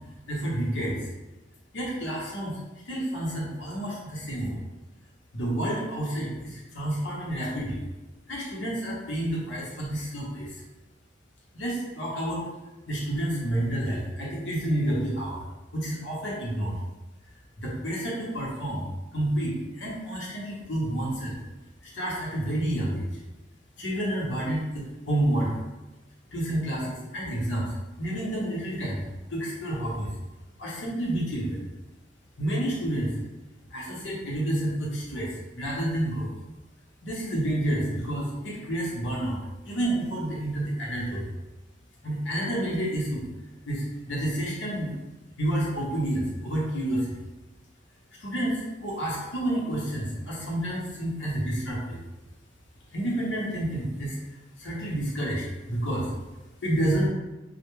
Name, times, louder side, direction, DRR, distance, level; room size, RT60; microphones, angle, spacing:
voice 1, 0.3-1.0 1.7-2.6 2.9-4.6 5.3-7.8 8.3-10.5 11.5-12.4 12.9-15.4 15.7-16.8 17.6-21.4 21.8-23.1 23.8-25.5 26.3-30.1 30.6-31.6 32.4-33.1 33.7-36.3 37.0-39.4 39.7-41.3 42.0-43.3 43.7-44.9 45.4-47.1 48.2-52.0 52.9-54.2 54.6-56.1 56.6-57.1, right 1 dB, 85° left, -4 dB, 0.8 m, -29 dB
2.2 x 2.1 x 3.0 m, 1.1 s
head